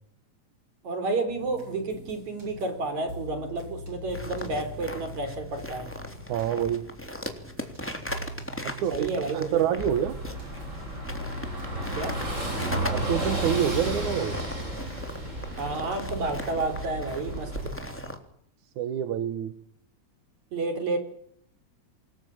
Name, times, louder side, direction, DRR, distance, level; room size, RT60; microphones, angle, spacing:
voice 1, 0.8-5.9 8.9-9.9 12.0-12.2 15.6-17.7 20.5-21.0, right 3 dB, 70° right, 8 dB, 5.9 m, -31 dB
sound 1, 1.3-18.1, left 1 dB, 40° right, 8.2 m, -42 dB
sound 2, 4.1-18.2, equal, 5° left, 3.1 m, -39 dB
voice 2, 6.3-6.8 8.8-10.2 12.9-14.4 18.8-19.5, right 10 dB, 85° right, 10 dB, 2.8 m, -27 dB
Car passing by / Engine, 9.8-17.7, right 1 dB, 25° right, 8.0 m, -33 dB
27.5 x 21.0 x 7.4 m, 0.68 s
omnidirectional pair, 3.3 m